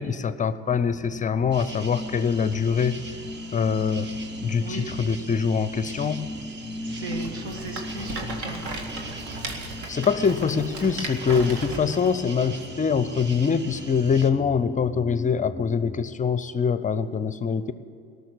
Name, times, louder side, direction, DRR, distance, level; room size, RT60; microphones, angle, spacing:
voice 1, 0.0-3.0 3.5-4.1 4.4-6.3 9.9-17.7, left 6 dB, 25° left, 14 dB, 0.6 m, -24 dB
sound 1, 0.7-16.0, left 1 dB, ahead, 3.3 m, -38 dB
sound 2, 1.5-14.3, right 3 dB, 35° right, 1.3 m, -42 dB
voice 2, 6.8-8.6, right 3 dB, 85° right, 3 dB, 2.0 m, -37 dB
Rattle, 7.1-12.2, right 2 dB, 60° right, 2.1 m, -36 dB
18.0 x 6.8 x 9.6 m, 2.6 s
hypercardioid pair, 65°, 32 cm